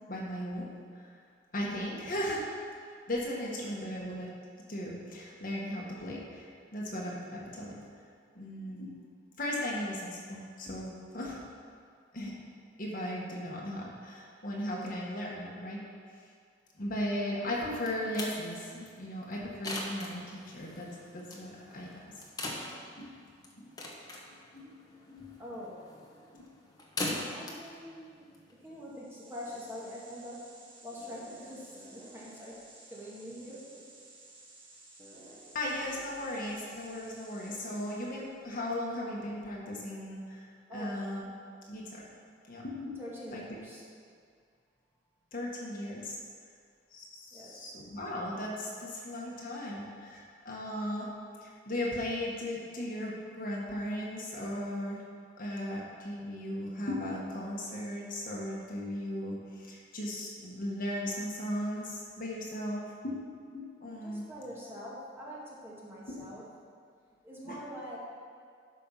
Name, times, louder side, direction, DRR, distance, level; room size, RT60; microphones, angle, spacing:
voice 1, 0.1-0.7 0.9-1.1 1.5-2.4 2.9-4.3 4.7-7.8 8.3-8.9 9.4-11.4 12.1-12.3 12.8-15.8 16.8-20.9 21.1-22.0 23.0-23.1 23.6-23.7 24.5-24.8 25.1-25.3 26.3-26.5 35.5-40.4 40.7-41.3 41.7-42.0 42.5-43.0 43.3-43.6 45.3-46.2 46.9-51.1 51.4-55.0 55.4-63.2 63.4-64.3 66.2-66.3 67.5-67.6, left 1 dB, 50° left, -3 dB, 1.6 m, -37 dB
sound 1, 17.5-29.0, left 1 dB, 20° left, 1.2 m, -42 dB
voice 2, 25.4-25.8 27.3-30.5 30.8-32.6 32.9-33.7 40.7-41.0 43.0-43.8 47.3-47.7 64.0-66.5 67.2-68.0, equal, 15° right, -6 dB, 2.1 m, -44 dB
sound 2, 28.8-38.4, right 2 dB, 30° right, 1.5 m, -54 dB
12.0 x 5.4 x 5.7 m, 2.2 s
head